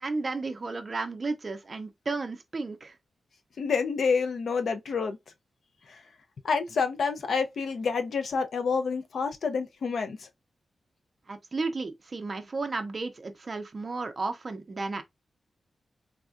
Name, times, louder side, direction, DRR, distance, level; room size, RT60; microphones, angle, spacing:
voice 1, 0.0-2.9 11.3-15.0, right 3 dB, 35° right, 0.5 m, -33 dB
voice 2, 3.6-5.2 5.9-6.0 6.4-10.3, left 5 dB, 70° left, 0.4 m, -28 dB
3.5 x 2.2 x 2.4 m
wide cardioid pair, 155°, 0 cm